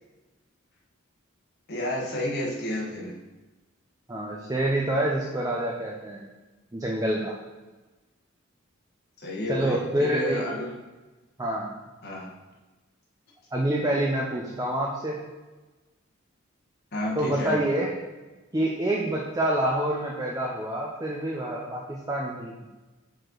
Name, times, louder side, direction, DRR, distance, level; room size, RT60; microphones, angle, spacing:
voice 1, 1.7-3.2 9.2-10.7 12.0-12.3 16.9-17.6, left 1 dB, 50° left, -4 dB, 1.3 m, -31 dB
voice 2, 4.1-6.2 6.7-7.3 9.5-10.4 11.4-11.7 13.5-15.2 17.2-17.9 18.5-22.5, right 1 dB, 15° right, -3 dB, 0.6 m, -27 dB
4.9 x 4.2 x 4.5 m, 1.2 s
head